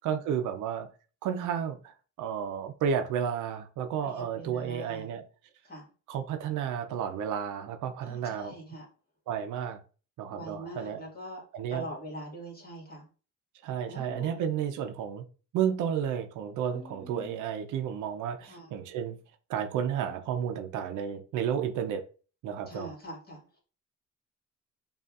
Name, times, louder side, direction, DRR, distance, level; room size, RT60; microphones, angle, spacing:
voice 1, 0.0-0.9 1.2-5.2 6.1-8.5 9.3-9.8 10.2-11.0 11.5-11.9 13.6-15.2 15.5-19.2 19.5-22.0 22.4-22.9, right 8 dB, 80° right, 0.6 m, -32 dB
voice 2, 4.0-5.1 5.6-5.8 8.0-8.9 10.3-11.4 11.7-13.1 13.8-14.4 16.7-17.4 18.4-18.7 22.7-23.6, equal, 30° left, 1.8 m, -43 dB
5.1 x 2.5 x 2.4 m
cardioid pair, 90°, 30 cm